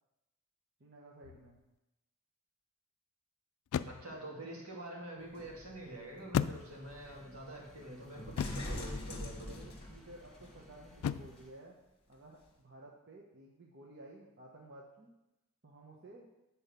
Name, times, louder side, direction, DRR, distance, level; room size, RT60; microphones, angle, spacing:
voice 1, 0.8-1.6 9.4-11.7 12.1-15.1 15.6-16.3, right 2 dB, 50° right, -2 dB, 1.0 m, -54 dB
sound 1, 1.2-1.6 3.7-4.2 6.3-7.1 8.4-8.8 11.0-11.5, left 8 dB, 90° left, 0.3 m, -36 dB
voice 2, 3.9-9.6, right 1 dB, 85° right, -3 dB, 2.6 m, -46 dB
sound 2, 5.2-10.5 11.4-11.5, left 1 dB, 25° left, 1.2 m, -45 dB
sound 3, 6.5-11.5, left 1 dB, ahead, 1.4 m, -59 dB
8.8 x 4.4 x 6.7 m, 0.93 s
head